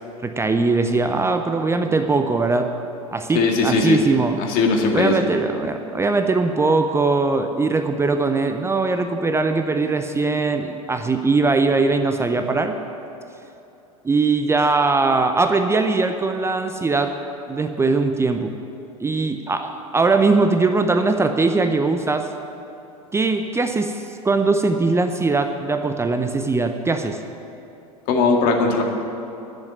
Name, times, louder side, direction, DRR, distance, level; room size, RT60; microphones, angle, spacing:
voice 1, 0.2-2.7 3.1-4.4 4.9-12.7 14.0-17.1 17.5-18.5 19.0-22.3 23.1-27.2, right 3 dB, 15° right, 7 dB, 0.7 m, -20 dB
voice 2, 3.3-4.0 4.5-5.2 28.1-28.8, left 4 dB, 50° left, 2 dB, 2.0 m, -19 dB
10.5 x 7.9 x 9.8 m, 2.9 s
hypercardioid pair, 85°, 19 cm